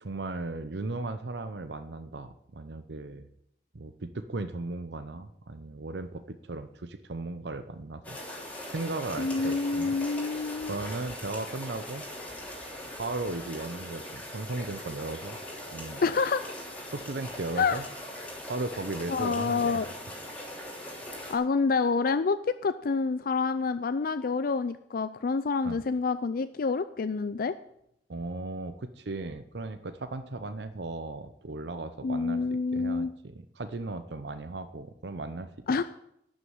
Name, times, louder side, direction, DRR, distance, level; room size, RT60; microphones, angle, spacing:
voice 1, 0.0-3.3 3.7-8.2 8.4-9.9 10.6-12.0 12.9-15.4 15.7-16.0 16.9-17.8 18.5-19.9 20.5-20.6 25.6-25.8 28.1-32.4 32.7-35.8, right 2 dB, 70° right, 10 dB, 0.7 m, -36 dB
sound 1, 8.0-21.3, left 1 dB, 10° left, 3.2 m, -41 dB
voice 2, 9.2-10.7 16.0-16.4 17.6-17.8 19.1-19.9 21.3-27.5 32.0-33.1 35.7-35.8, left 4 dB, 55° left, 12 dB, 0.4 m, -27 dB
12.0 x 6.3 x 9.4 m, 0.76 s
head